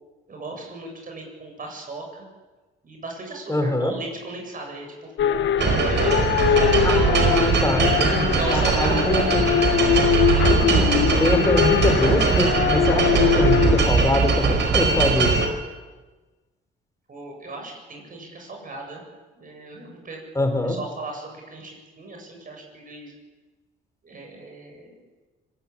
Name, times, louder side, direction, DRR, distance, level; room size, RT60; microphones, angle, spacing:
voice 1, 0.3-2.0 2.8-6.8 8.3-9.2 17.1-19.0 19.4-23.1 24.0-25.0, right 2 dB, 45° right, 1 dB, 8.0 m, -36 dB
voice 2, 3.5-3.9 6.8-9.6 10.4-10.9 11.2-15.4 20.3-20.8, left 1 dB, 15° left, 6 dB, 4.9 m, -24 dB
sound 1, 5.2-13.8, left 10 dB, 70° left, 1.3 m, -22 dB
sound 2, 5.6-15.5, right 5 dB, 65° right, 4.6 m, -21 dB
25.0 x 17.5 x 9.1 m, 1.3 s
cardioid pair, 90°, 20 cm